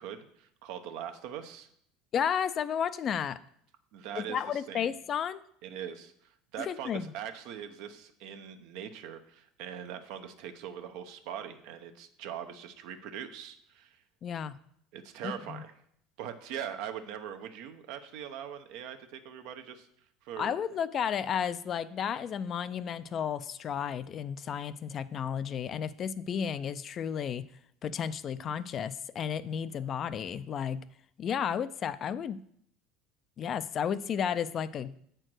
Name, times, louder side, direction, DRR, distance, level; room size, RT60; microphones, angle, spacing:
voice 1, 0.0-1.7 3.9-4.9 5.6-14.0 14.9-15.7 16.2-19.9 20.2-20.6, right 9 dB, 70° right, 7 dB, 0.8 m, -41 dB
voice 2, 2.1-3.4 4.1-5.4 6.6-7.1 14.2-14.6 15.2-15.6 20.4-27.5 27.8-30.8 31.2-32.4 33.4-35.0, left 8 dB, 40° left, 14 dB, 0.4 m, -33 dB
7.7 x 4.5 x 6.2 m, 0.68 s
supercardioid pair, 95°, 0 cm